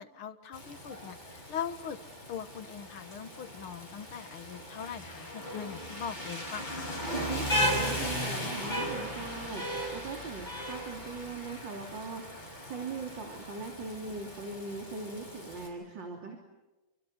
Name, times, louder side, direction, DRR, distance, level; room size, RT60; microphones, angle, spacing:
voice 1, 0.0-2.0 2.3-7.0, left 8 dB, 75° left, 11 dB, 2.3 m, -41 dB
Rain, 0.5-15.7, equal, 20° left, 6.7 m, -37 dB
voice 2, 7.1-16.4, right 4 dB, 60° right, 2 dB, 3.7 m, -40 dB
29.0 x 25.5 x 8.1 m, 1.1 s
omnidirectional pair, 2.4 m